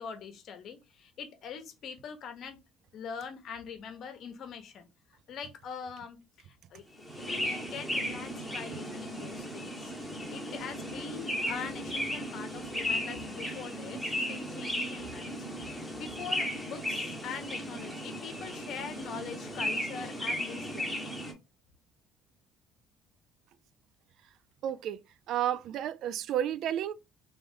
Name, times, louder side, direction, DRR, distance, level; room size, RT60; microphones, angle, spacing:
voice 1, 0.0-2.6 2.9-4.9 5.3-6.8 7.2-9.9 10.3-20.9, left 6 dB, 60° left, 1.1 m, -43 dB
sound 1, 7.0-21.3, equal, 5° left, 1.3 m, -36 dB
voice 2, 24.6-25.0 25.3-26.9, right 11 dB, 65° right, 0.3 m, -31 dB
3.1 x 3.0 x 3.6 m
cardioid pair, 95°, 0 cm